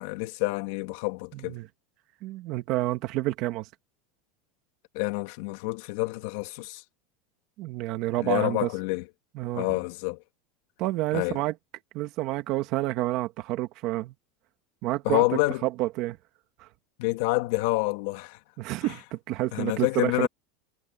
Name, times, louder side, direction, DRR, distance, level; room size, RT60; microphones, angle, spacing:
voice 1, 0.0-1.6 4.9-6.8 8.2-9.0 9.5-10.2 11.1-11.4 15.0-15.6 17.0-18.4 18.8-18.9 19.5-20.3, left 22 dB, 60° left, 2.4 m, -28 dB
voice 2, 1.3-1.7 2.2-3.7 7.6-8.7 9.3-9.7 10.8-11.5 11.9-14.1 14.8-15.2 15.6-16.2 16.6-16.7 18.6-20.3, right 17 dB, 45° right, 2.0 m, -29 dB
supercardioid pair, 160°, 0 cm